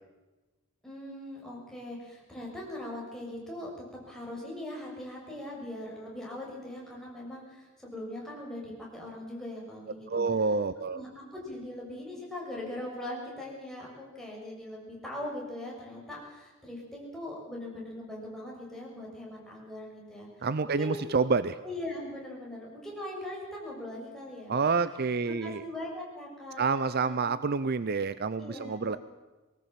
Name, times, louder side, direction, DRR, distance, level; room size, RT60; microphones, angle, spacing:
voice 1, 0.8-3.7 4.1-10.2 10.9-20.3 20.8-21.1 21.6-24.5 25.2-27.2 28.4-29.0, left 1 dB, ahead, -4 dB, 6.7 m, -40 dB
voice 2, 10.1-11.0 20.4-21.6 24.5-25.6 26.6-29.0, right 4 dB, 50° right, 14 dB, 0.6 m, -28 dB
20.5 x 18.5 x 7.6 m, 1.2 s
head